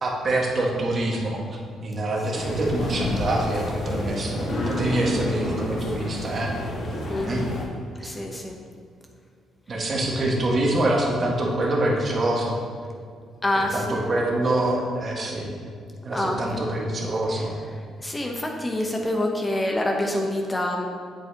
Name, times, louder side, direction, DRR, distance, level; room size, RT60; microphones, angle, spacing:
voice 1, 0.0-1.4 1.8-6.5 7.2-7.4 9.7-12.6 13.7-15.5 16.0-17.6, right 1 dB, 40° right, -2 dB, 1.6 m, -25 dB
sound 1, 2.3-7.7, left 1 dB, 55° left, 1.8 m, -30 dB
voice 2, 7.1-7.5 8.0-8.6 9.7-9.9 13.4-14.1 16.1-16.6 17.3-17.4 18.0-20.9, left 1 dB, 20° left, 1 dB, 0.9 m, -27 dB
8.0 x 7.7 x 2.9 m, 2.2 s
cardioid pair, 90°, 0 cm